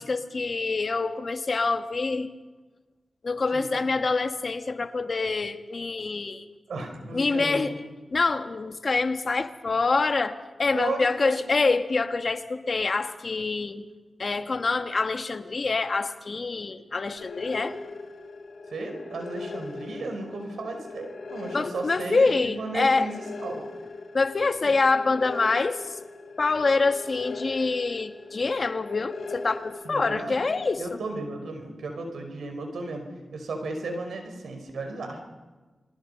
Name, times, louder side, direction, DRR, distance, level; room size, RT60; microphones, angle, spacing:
voice 1, 0.0-2.3 3.2-6.5 7.1-7.7 8.1-13.8 14.2-17.7 21.5-23.1 24.1-26.0 26.4-31.0, left 3 dB, 55° left, 8 dB, 1.7 m, -26 dB
voice 2, 6.7-7.8 10.7-11.6 18.7-23.6 24.6-24.7 29.8-30.3 30.8-35.2, right 2 dB, 85° right, 5 dB, 5.0 m, -34 dB
sound 1, 17.2-30.7, left 3 dB, 80° left, 3.8 m, -40 dB
28.5 x 23.0 x 5.6 m, 1.3 s
cardioid pair, 50°, 0 cm